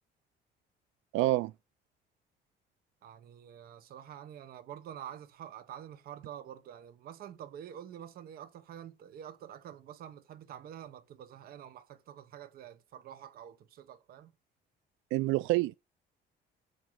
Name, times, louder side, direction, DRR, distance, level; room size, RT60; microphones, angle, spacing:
voice 1, 1.1-1.5 15.1-15.7, right 18 dB, 90° right, 0.4 m, -27 dB
voice 2, 3.0-14.3, right 10 dB, 50° right, 1.2 m, -47 dB
7.9 x 7.7 x 5.8 m
cardioid pair, 175°, 20 cm